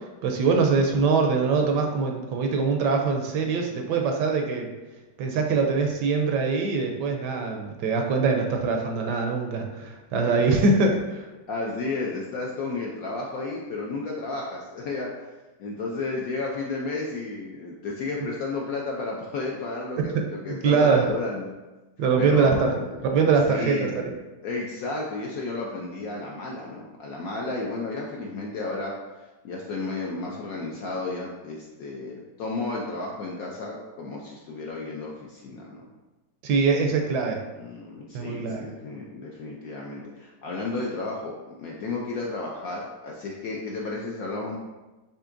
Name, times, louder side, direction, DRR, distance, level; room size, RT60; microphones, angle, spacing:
voice 1, 0.2-4.7 5.2-11.0 20.1-21.1 22.0-22.7 23.1-23.9 36.4-37.4 38.1-38.7, right 4 dB, 75° right, 3 dB, 1.1 m, -23 dB
voice 2, 11.5-15.1 15.6-21.5 22.2-22.9 23.5-24.0 24.4-35.9 37.6-44.6, left 3 dB, 70° left, -2 dB, 0.8 m, -32 dB
6.8 x 2.8 x 2.5 m, 1.1 s
omnidirectional pair, 2.0 m